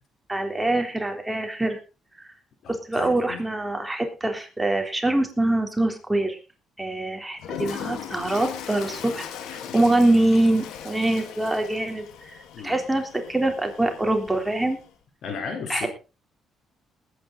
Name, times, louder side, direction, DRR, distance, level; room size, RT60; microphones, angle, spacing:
voice 1, 0.3-1.8 2.2-2.3 2.7-6.4 6.8-9.2 9.7-12.4 12.6-14.8 15.7-15.9, right 1 dB, 10° right, 4 dB, 3.5 m, -24 dB
voice 2, 2.6-3.4 9.6-9.8 12.5-12.8 15.2-15.9, left 6 dB, 70° left, 5 dB, 3.9 m, -35 dB
Toilet flush, 7.4-14.9, left 9 dB, 90° left, 2.0 m, -39 dB
20.0 x 9.3 x 3.9 m, 0.32 s
cardioid pair, 90°, 0 cm